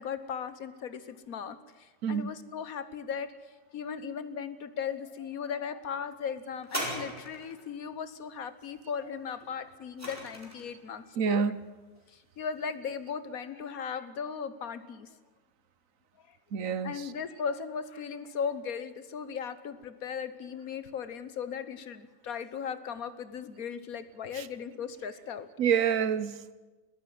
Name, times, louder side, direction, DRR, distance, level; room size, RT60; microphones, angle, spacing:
voice 1, 0.0-3.3 3.7-11.4 12.1-15.2 16.3-16.4 16.8-25.5, left 7 dB, 85° left, 13 dB, 1.6 m, -37 dB
voice 2, 2.0-2.4 11.2-11.6 16.5-17.1 24.3-24.5 25.6-26.4, right 7 dB, 70° right, 15 dB, 1.3 m, -28 dB
sound 1, 6.6-7.7 9.4-10.8 11.6-11.7, equal, 10° right, 4.5 m, -38 dB
22.0 x 14.5 x 9.5 m, 1.2 s
omnidirectional pair, 1.5 m